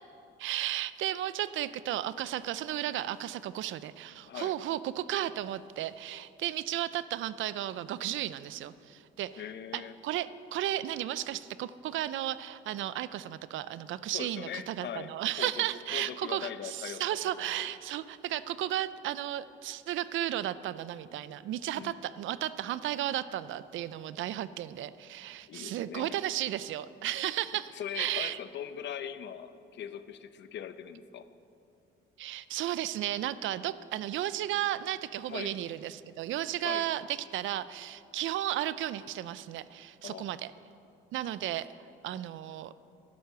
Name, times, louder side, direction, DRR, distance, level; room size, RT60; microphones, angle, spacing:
voice 1, 0.4-9.4 9.7-28.4 32.2-40.5 41.1-41.7 42.0-42.7, right 13 dB, 75° right, 15 dB, 0.5 m, -34 dB
voice 2, 9.4-10.0 14.1-15.1 15.4-15.7 15.9-17.7 21.7-22.0 25.5-26.2 27.7-31.3 35.3-35.6 36.6-36.9 40.0-40.4, left 9 dB, 65° left, 12 dB, 0.7 m, -41 dB
11.5 x 10.5 x 6.7 m, 2.6 s
cardioid pair, 90°, 20 cm